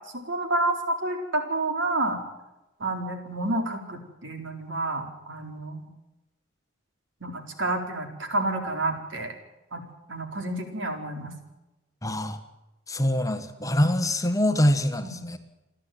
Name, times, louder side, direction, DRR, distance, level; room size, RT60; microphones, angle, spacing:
voice 1, 0.2-2.2 2.8-5.9 7.2-9.3 9.7-9.8 10.1-11.3 15.0-15.2, right 2 dB, 70° right, 4 dB, 4.3 m, -29 dB
voice 2, 12.0-12.4 12.9-15.4, left 1 dB, 15° left, 8 dB, 1.5 m, -24 dB
29.0 x 12.0 x 9.3 m, 0.99 s
head